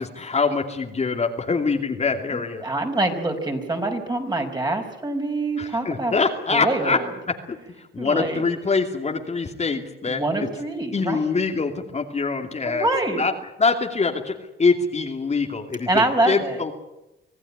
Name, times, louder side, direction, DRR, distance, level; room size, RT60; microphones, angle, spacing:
voice 1, 0.0-2.6 5.6-7.0 7.5-7.6 7.9-10.2 10.9-12.9 13.2-13.3 13.6-16.7, left 4 dB, 35° left, 3 dB, 2.6 m, -24 dB
voice 2, 2.3-6.1 6.5-7.1 8.0-8.4 10.1-11.2 12.6-13.2 15.9-16.6, right 2 dB, 20° right, 3 dB, 5.2 m, -25 dB
25.5 x 16.0 x 9.9 m, 0.96 s
cardioid pair, 90°, 20 cm